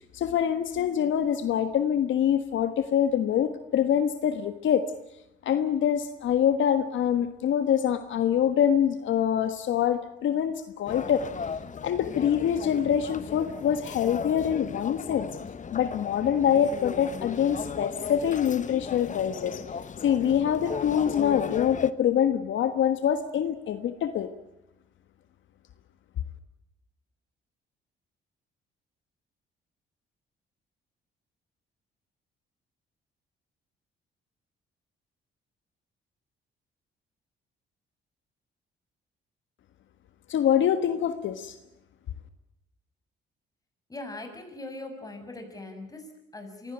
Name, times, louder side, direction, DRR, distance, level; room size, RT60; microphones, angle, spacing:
voice 1, 0.1-4.9 5.4-11.3 11.8-15.3 15.7-19.6 20.0-24.3 40.3-41.5, left 9 dB, 75° left, 10 dB, 1.5 m, -25 dB
sound 1, 10.9-21.9, left 6 dB, 40° left, 1.1 m, -37 dB
voice 2, 43.9-46.7, left 2 dB, 20° left, 4 dB, 6.8 m, -40 dB
24.0 x 16.5 x 9.8 m, 0.92 s
cardioid pair, 90°, 20 cm